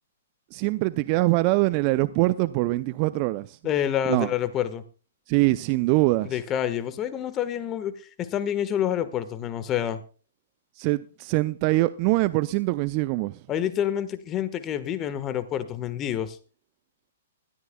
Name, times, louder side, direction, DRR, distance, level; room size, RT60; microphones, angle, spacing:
voice 1, 0.5-3.6 4.1-4.3 5.3-6.4 10.8-13.4, right 20 dB, 40° right, 0.5 m, -23 dB
voice 2, 3.6-4.8 6.2-10.0 13.5-16.4, left 10 dB, 25° left, 1.4 m, -28 dB
20.0 x 13.5 x 2.3 m
figure-of-eight pair, 120°, 0 cm